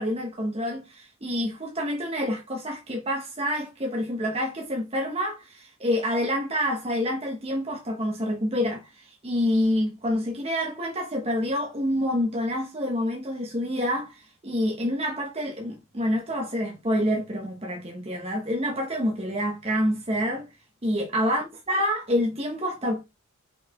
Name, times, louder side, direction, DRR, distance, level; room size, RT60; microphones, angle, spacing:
voice 1, 0.0-20.5 20.8-23.0, equal, 30° right, 1.1 m, -27 dB
5.8 x 4.2 x 4.3 m
head